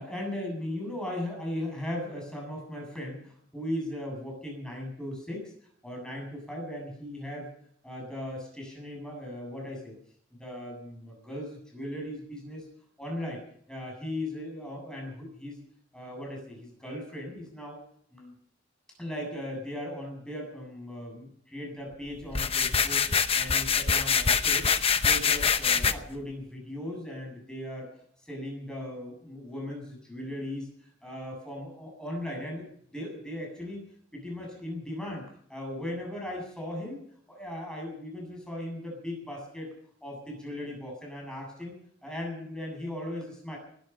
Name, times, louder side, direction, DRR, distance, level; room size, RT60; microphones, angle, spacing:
voice 1, 0.0-5.5 5.8-7.5 7.8-10.0 10.3-12.7 13.0-13.4 13.7-15.6 15.9-17.8 18.1-18.3 19.0-23.0 23.3-24.7 25.0-27.9 28.2-33.8 34.1-37.0 37.3-39.7 40.0-43.6, left 1 dB, 5° left, 1 dB, 7.7 m, -38 dB
sound 1, 22.3-25.9, left 6 dB, 30° left, 0.9 m, -24 dB
20.5 x 12.5 x 5.7 m, 0.64 s
head